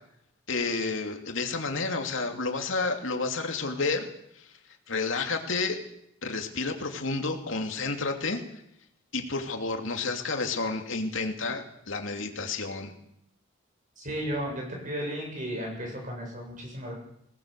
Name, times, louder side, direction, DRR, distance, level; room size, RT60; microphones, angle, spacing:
voice 1, 0.5-4.1 4.4-4.5 4.9-5.8 6.2-8.4 9.1-12.9, left 3 dB, 75° left, 4 dB, 2.7 m, -30 dB
voice 2, 14.0-16.9, equal, 40° right, 0 dB, 7.9 m, -34 dB
21.5 x 19.0 x 6.9 m, 0.75 s
head